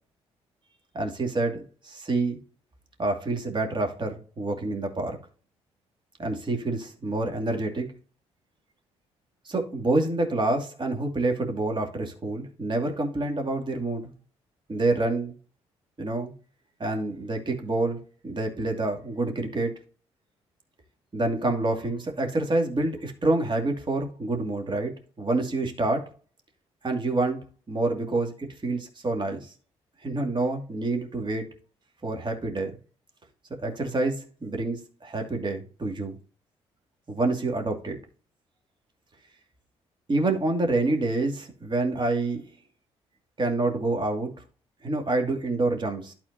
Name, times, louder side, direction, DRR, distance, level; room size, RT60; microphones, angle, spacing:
voice 1, 0.9-2.4 3.0-5.2 6.2-7.9 9.5-14.1 14.7-15.4 16.0-16.3 16.8-18.0 18.2-19.7 21.1-26.1 26.8-27.4 27.7-29.5 30.0-31.5 32.0-32.8 33.6-36.2 37.1-38.0 40.1-42.4 43.4-44.3 44.8-46.1, right 2 dB, 35° right, 2.4 m, -27 dB
12.0 x 4.3 x 2.8 m
hypercardioid pair, 50°, 13 cm